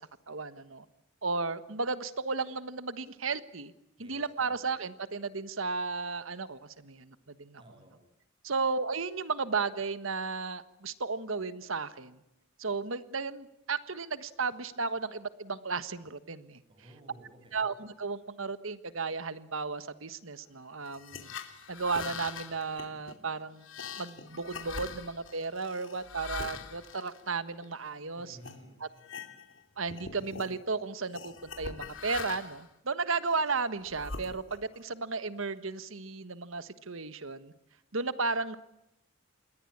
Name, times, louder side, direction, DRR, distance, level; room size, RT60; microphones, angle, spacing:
voice 1, 0.3-0.8 1.2-3.7 4.0-7.6 8.4-12.2 12.6-16.6 17.5-21.3 21.7-23.6 24.0-28.4 29.8-37.5 37.9-38.6, right 4 dB, 75° right, 13 dB, 1.5 m, -34 dB
voice 2, 4.0-4.7 7.6-8.1 16.7-17.7 28.2-28.8, equal, 25° right, 7 dB, 7.3 m, -54 dB
sound 1, 20.8-27.9 28.4-28.6 29.0-29.6 29.9-30.5 31.1-32.7 33.2-34.8, left 5 dB, 65° left, 3.0 m, -43 dB
28.0 x 22.5 x 8.7 m, 0.85 s
head